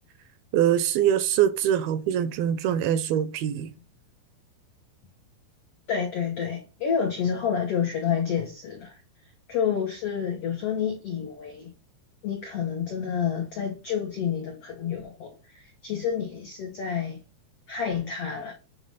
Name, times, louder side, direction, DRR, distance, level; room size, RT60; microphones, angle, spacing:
voice 1, 0.5-3.7, right 10 dB, 80° right, 2.3 m, -23 dB
voice 2, 5.9-9.0 9.5-11.7 12.2-17.2 17.7-18.5, left 7 dB, 85° left, 1.3 m, -29 dB
8.7 x 3.1 x 5.4 m
omnidirectional pair, 4.6 m